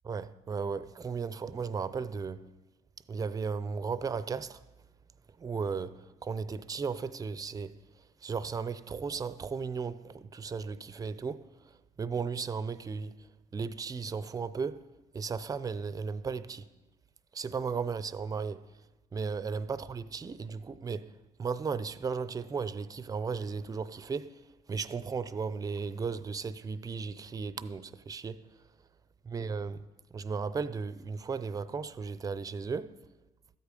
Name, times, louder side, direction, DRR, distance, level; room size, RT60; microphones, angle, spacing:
voice 1, 0.1-2.5 3.1-4.6 5.4-7.8 8.2-11.5 12.0-13.3 13.5-14.9 15.1-16.7 17.3-18.7 19.1-24.4 24.7-28.4 29.3-29.8 30.1-33.0, right 5 dB, 20° right, 0.4 m, -35 dB
13.0 x 8.1 x 5.1 m
cardioid pair, 110°, 17 cm